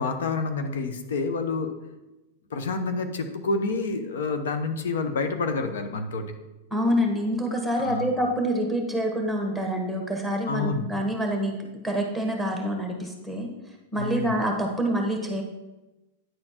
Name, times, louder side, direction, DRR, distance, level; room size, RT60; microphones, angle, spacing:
voice 1, 0.0-1.7 2.5-6.3 7.8-8.1 10.5-10.8 14.0-14.3, left 3 dB, 80° left, 7 dB, 0.9 m, -28 dB
voice 2, 6.7-11.5 11.8-15.4, equal, 5° left, 1 dB, 1.5 m, -27 dB
9.3 x 4.4 x 4.4 m, 1.0 s
hypercardioid pair, 130°, 0 cm